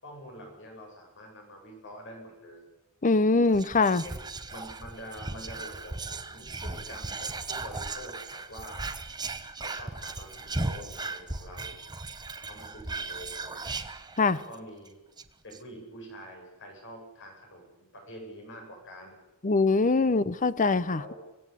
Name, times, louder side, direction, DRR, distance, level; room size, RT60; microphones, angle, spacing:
voice 1, 0.0-2.7 3.8-4.2 4.5-8.9 9.6-11.8 12.4-13.8 14.3-15.0 15.4-19.2 20.0-20.3 20.9-21.2, equal, 55° left, 2 dB, 7.8 m, -46 dB
voice 2, 3.0-4.0 14.2-14.4 19.4-21.0, left 3 dB, 35° left, 16 dB, 0.8 m, -23 dB
Whispering, 3.5-14.5 14.9-15.0 15.2-15.6, right 3 dB, 20° right, 1.1 m, -37 dB
24.5 x 18.0 x 8.4 m, 1.0 s
head